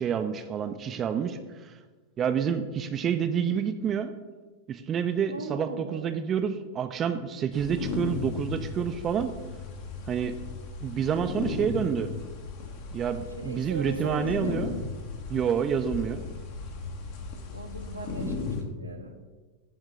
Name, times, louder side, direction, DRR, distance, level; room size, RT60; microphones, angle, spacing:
voice 1, 0.0-1.7 2.2-4.1 4.7-9.3 10.1-10.4 10.8-12.1 12.9-14.8 15.3-16.2, right 7 dB, 25° right, 8 dB, 0.5 m, -28 dB
voice 2, 5.3-6.2 13.4-14.7 17.4-19.2, right 2 dB, 85° right, 3 dB, 1.0 m, -39 dB
sound 1, 7.5-18.6, left 4 dB, 50° left, 1.2 m, -36 dB
9.7 x 3.6 x 6.7 m, 1.3 s
figure-of-eight pair, 90°, 0 cm